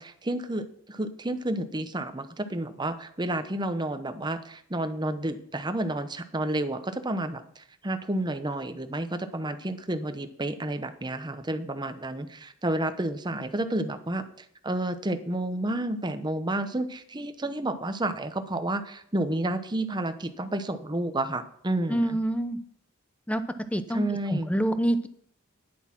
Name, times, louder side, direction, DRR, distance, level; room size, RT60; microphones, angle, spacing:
voice 1, 0.0-14.2 14.6-22.2 23.9-24.5, right 1 dB, 20° right, 9 dB, 0.9 m, -30 dB
voice 2, 21.9-22.6 23.3-23.4 23.7-24.0 24.3-25.1, right 1 dB, 5° left, 10 dB, 0.8 m, -26 dB
10.5 x 8.1 x 6.0 m, 0.63 s
head